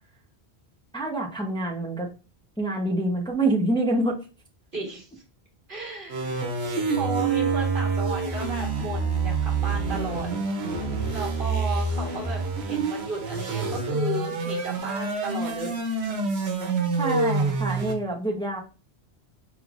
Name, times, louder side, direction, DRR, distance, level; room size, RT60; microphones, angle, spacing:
voice 1, 0.9-2.1 2.6-4.2 17.0-18.6, right 2 dB, 5° left, 0 dB, 0.6 m, -26 dB
voice 2, 4.7-5.1 5.7-6.4 6.9-10.3 11.1-15.8, right 3 dB, 55° right, -1 dB, 1.6 m, -34 dB
sound 1, 6.1-17.9, right 3 dB, 85° right, 1.1 m, -27 dB
4.8 x 3.4 x 2.4 m, 0.34 s
omnidirectional pair, 1.1 m